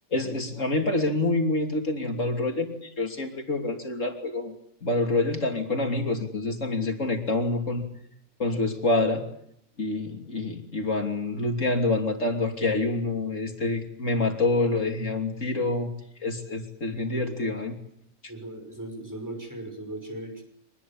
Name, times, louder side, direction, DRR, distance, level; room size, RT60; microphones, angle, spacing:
voice 1, 0.1-4.5 4.8-7.9 8.4-9.2 9.8-15.9 16.2-17.7, left 2 dB, 65° left, 4 dB, 3.3 m, -27 dB
voice 2, 18.3-20.4, right 1 dB, 15° right, 4 dB, 6.0 m, -38 dB
24.0 x 20.5 x 8.8 m, 0.72 s
omnidirectional pair, 1.4 m